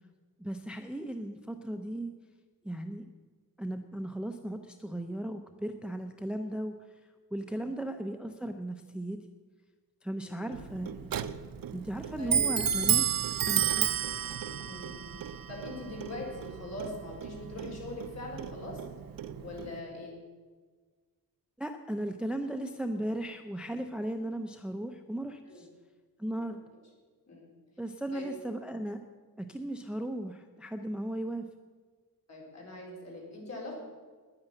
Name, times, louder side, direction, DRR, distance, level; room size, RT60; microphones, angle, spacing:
voice 1, 0.4-2.1 2.6-3.1 3.6-6.7 7.3-9.2 10.0-11.1 11.7-13.9 21.6-25.7 26.2-26.6 27.8-29.0 29.4-31.4, right 1 dB, 5° right, 6 dB, 0.6 m, -36 dB
voice 2, 10.2-10.6 12.2-12.5 14.6-18.8 19.4-20.1 25.4-25.6 27.3-27.6 28.1-28.3 32.3-33.7, left 2 dB, 45° left, -2 dB, 4.5 m, -42 dB
Clock, 10.5-19.8, right 9 dB, 65° right, 0.6 m, -32 dB
10.0 x 9.7 x 9.0 m, 1.4 s
wide cardioid pair, 150°, 37 cm